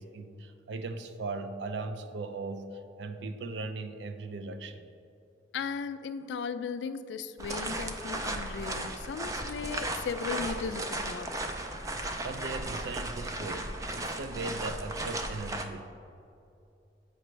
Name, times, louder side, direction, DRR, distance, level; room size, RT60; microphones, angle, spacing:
voice 1, 0.0-4.8 11.8-11.9 12.2-15.9, right 3 dB, 85° right, 9 dB, 0.4 m, -38 dB
voice 2, 5.5-11.3, left 6 dB, 90° left, 12 dB, 0.3 m, -36 dB
sound 1, 7.4-15.6, right 2 dB, 20° right, 0.3 m, -35 dB
7.7 x 5.2 x 3.2 m, 2.6 s
head